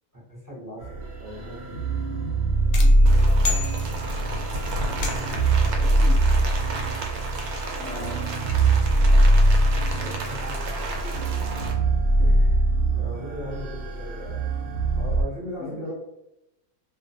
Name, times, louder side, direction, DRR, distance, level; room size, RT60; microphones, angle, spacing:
voice 1, 0.1-1.9 7.9-8.2 9.9-10.7 11.0-11.4 12.2-12.6 12.9-14.4 14.9-15.9, equal, 25° right, -6 dB, 0.5 m, -39 dB
sound 1, 0.8-15.2, right 1 dB, 65° right, 0.7 m, -22 dB
sound 2, 2.7-4.4 5.0-5.6, left 4 dB, 90° left, 1.1 m, -33 dB
voice 2, 2.8-3.6 3.8-4.3 4.9-6.4 7.8-8.4 9.1-9.2 13.4-13.6 15.4-15.9, left 2 dB, 65° left, -3 dB, 0.8 m, -41 dB
Rain, 3.1-11.7, right 2 dB, 90° right, 1.1 m, -33 dB
2.3 x 2.2 x 2.6 m, 0.87 s
omnidirectional pair, 1.5 m